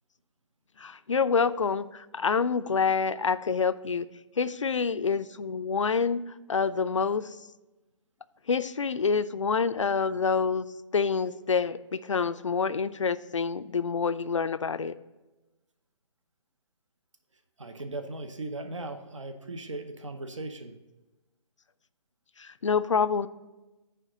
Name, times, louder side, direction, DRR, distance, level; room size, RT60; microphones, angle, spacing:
voice 1, 0.8-4.1 4.4-6.2 6.5-7.4 8.5-10.7 10.9-14.9 22.4-23.3, left 5 dB, 70° left, 14 dB, 0.4 m, -27 dB
voice 2, 17.6-20.7, right 2 dB, 70° right, 8 dB, 0.8 m, -38 dB
9.2 x 3.4 x 5.8 m, 1.1 s
figure-of-eight pair, 135°, 16 cm